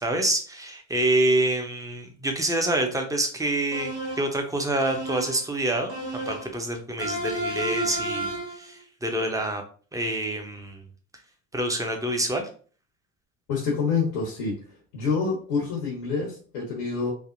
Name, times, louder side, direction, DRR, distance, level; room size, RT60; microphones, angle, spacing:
voice 1, 0.0-5.9 6.3-9.6 9.9-10.8 11.5-12.5, right 1 dB, 5° right, 3 dB, 0.6 m, -27 dB
sound 1, 3.7-4.4 4.8-5.5 5.9-6.6 7.0-8.6, right 1 dB, 85° right, 1.1 m, -32 dB
voice 2, 13.5-14.6 14.9-17.1, left 5 dB, 80° left, -3 dB, 1.1 m, -27 dB
3.4 x 2.1 x 2.5 m, 0.41 s
hypercardioid pair, 75°, 46 cm